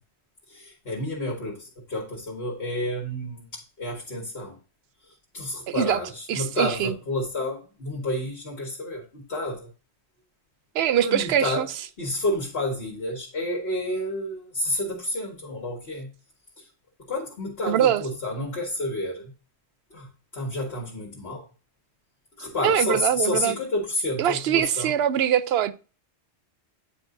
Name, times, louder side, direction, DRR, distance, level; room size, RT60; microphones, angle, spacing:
voice 1, 0.5-4.6 5.1-9.7 11.0-11.7 12.0-16.1 16.6-16.7 17.1-19.3 19.9-21.5 22.4-24.9, left 1 dB, 65° left, 1.9 m, -30 dB
voice 2, 5.7-6.0 6.3-6.9 10.7-11.7 17.7-18.0 22.6-23.6 24.2-25.7, right 10 dB, 70° right, 0.8 m, -23 dB
9.5 x 4.7 x 2.6 m
omnidirectional pair, 1.1 m